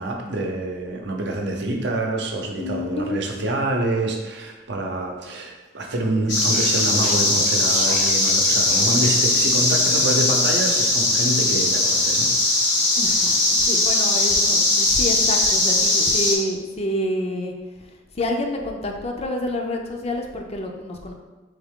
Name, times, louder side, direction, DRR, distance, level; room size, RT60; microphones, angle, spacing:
voice 1, 0.0-12.9, right 2 dB, 70° right, 1 dB, 0.7 m, -27 dB
voice 2, 2.6-3.2 13.0-17.5 18.1-21.1, left 1 dB, 35° left, 2 dB, 0.5 m, -28 dB
Speech, 5.9-9.3, right 4 dB, 40° right, 0.4 m, -36 dB
sound 1, 6.3-16.4, left 2 dB, 75° left, 1.1 m, -19 dB
3.7 x 3.6 x 3.6 m, 1.2 s
head